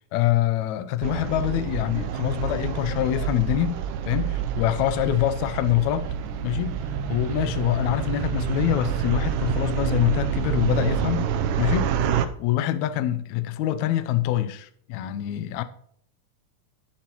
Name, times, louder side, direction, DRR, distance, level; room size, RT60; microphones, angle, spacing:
voice 1, 0.1-6.1 6.4-6.8 7.1-11.3 11.6-15.6, left 12 dB, 80° left, 1.7 m, -25 dB
sound 1, 1.0-12.3, right 8 dB, 80° right, 2.2 m, -27 dB
18.0 x 7.3 x 3.0 m
omnidirectional pair, 3.8 m